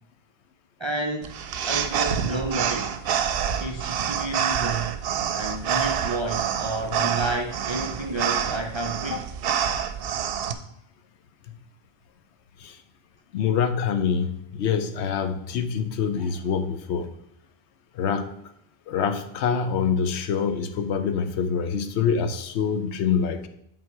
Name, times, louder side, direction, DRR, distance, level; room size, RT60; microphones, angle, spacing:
voice 1, 0.8-1.4 1.7-3.0 3.6-5.0 5.3-9.3 16.2-16.3, right 2 dB, 45° right, 3 dB, 0.4 m, -30 dB
sound 1, 1.2-10.5, right 8 dB, 65° right, 0.7 m, -27 dB
voice 2, 13.3-17.1 17.9-18.3 18.9-23.5, left 6 dB, 90° left, 8 dB, 0.9 m, -25 dB
7.7 x 3.8 x 4.6 m, 0.74 s
omnidirectional pair, 1.1 m